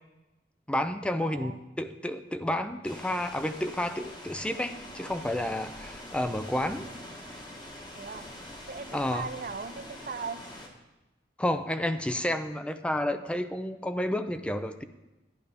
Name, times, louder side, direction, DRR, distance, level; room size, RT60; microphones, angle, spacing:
voice 1, 0.7-1.5 1.8-6.9 8.9-9.3 11.4-14.8, left 1 dB, 5° left, 10 dB, 0.4 m, -30 dB
voice 2, 1.2-1.6 8.0-8.3 8.7-10.5, right 5 dB, 50° right, 11 dB, 0.5 m, -38 dB
sound 1, 2.8-10.7, left 1 dB, 25° left, 1.3 m, -44 dB
12.0 x 11.0 x 3.4 m, 1.0 s
head